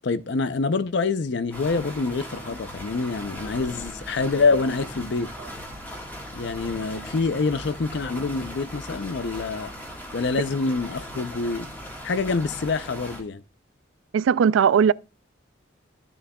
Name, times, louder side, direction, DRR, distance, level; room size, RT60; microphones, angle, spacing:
voice 1, 0.0-5.3 6.3-9.7 10.1-11.7 12.0-13.4, left 4 dB, 65° left, 0.5 m, -26 dB
sound 1, 1.5-13.2, equal, 10° left, 1.5 m, -38 dB
voice 2, 14.1-14.9, right 7 dB, 85° right, 0.3 m, -18 dB
13.0 x 6.9 x 2.3 m
head